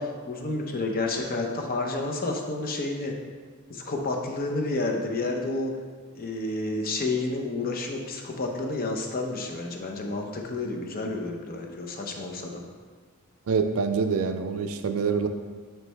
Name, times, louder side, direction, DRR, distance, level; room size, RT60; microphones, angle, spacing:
voice 1, 0.0-3.1 3.7-5.7 6.2-12.6, left 2 dB, 40° left, 2 dB, 0.7 m, -30 dB
voice 2, 13.5-15.3, right 5 dB, 65° right, 7 dB, 0.4 m, -25 dB
9.1 x 3.3 x 3.3 m, 1.5 s
head